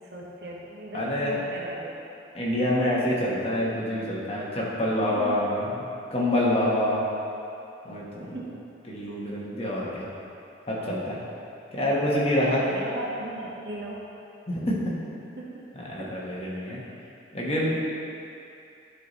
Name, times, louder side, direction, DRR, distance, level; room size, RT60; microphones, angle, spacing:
voice 1, 0.0-2.0 2.7-2.8 5.1-5.4 6.5-7.1 8.2-8.6 9.0-9.2 11.8-12.0 12.5-14.1 15.4-16.1 16.8-17.0, right 2 dB, 60° right, -4 dB, 1.1 m, -38 dB
voice 2, 0.9-1.3 2.3-7.0 7.8-8.2 8.9-10.1 10.7-11.2 11.7-12.7 14.5-14.9 15.9-16.8 17.3-17.8, left 1 dB, 30° left, -6 dB, 1.1 m, -26 dB
11.5 x 4.0 x 3.1 m, 2.6 s
head